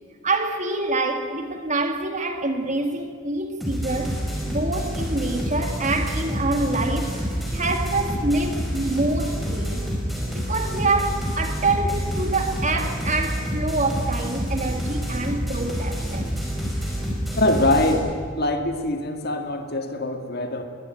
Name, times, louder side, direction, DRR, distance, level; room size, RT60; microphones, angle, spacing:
voice 1, 0.2-4.2 4.5-9.9 10.3-16.3, right 2 dB, 35° right, 6 dB, 2.0 m, -26 dB
sound 1, 3.6-17.9, equal, ahead, 5.2 m, -28 dB
voice 2, 17.4-18.1 18.3-20.6, left 1 dB, 50° left, 6 dB, 2.0 m, -23 dB
21.5 x 20.0 x 9.2 m, 2.1 s
head